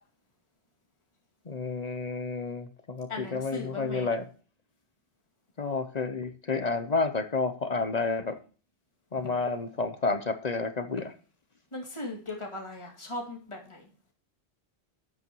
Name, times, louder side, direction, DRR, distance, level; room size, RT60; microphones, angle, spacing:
voice 1, 1.5-4.2 5.6-8.4 9.1-11.1, left 4 dB, 40° left, 10 dB, 0.8 m, -30 dB
voice 2, 3.1-4.1 9.1-9.3 11.7-13.9, left 2 dB, 25° left, 0 dB, 2.3 m, -38 dB
12.0 x 8.3 x 3.0 m, 0.39 s
omnidirectional pair, 1.1 m